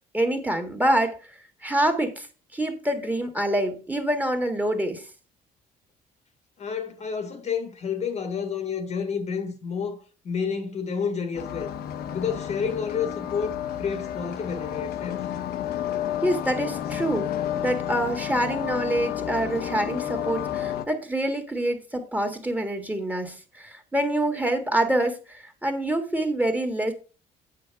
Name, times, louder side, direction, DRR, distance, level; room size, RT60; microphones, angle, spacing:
voice 1, 0.1-1.2 1.6-2.3 2.5-5.1 16.2-17.3 17.6-26.9, right 1 dB, 10° right, 1.7 m, -26 dB
voice 2, 6.6-10.0 10.2-11.7 12.1-15.2, left 6 dB, 40° left, 1.3 m, -30 dB
sound 1, 11.3-20.9, left 10 dB, 65° left, 0.9 m, -31 dB
8.5 x 6.4 x 4.6 m
cardioid pair, 110°, 17 cm